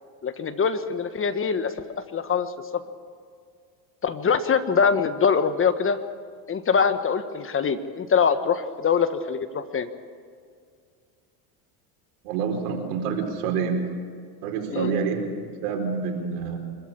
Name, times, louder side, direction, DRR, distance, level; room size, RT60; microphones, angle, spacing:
voice 1, 0.2-1.7 2.1-2.5 4.0-6.0 6.5-9.9 14.7-14.9, left 6 dB, 30° left, 11 dB, 1.3 m, -23 dB
voice 2, 12.2-13.8 14.4-16.6, right 5 dB, 85° right, 2 dB, 4.7 m, -27 dB
25.0 x 14.0 x 8.8 m, 2.1 s
supercardioid pair, 105°, 45 cm